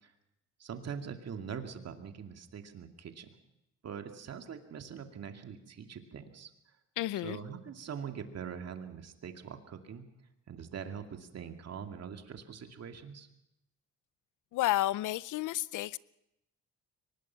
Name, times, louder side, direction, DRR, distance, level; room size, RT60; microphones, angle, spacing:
voice 1, 0.6-3.3 3.8-6.5 7.2-10.1 10.5-13.3, right 7 dB, 55° right, 2.4 m, -43 dB
voice 2, 7.0-7.4 14.5-16.0, left 15 dB, 80° left, 0.6 m, -31 dB
23.5 x 19.5 x 5.8 m
cardioid pair, 90°, 30 cm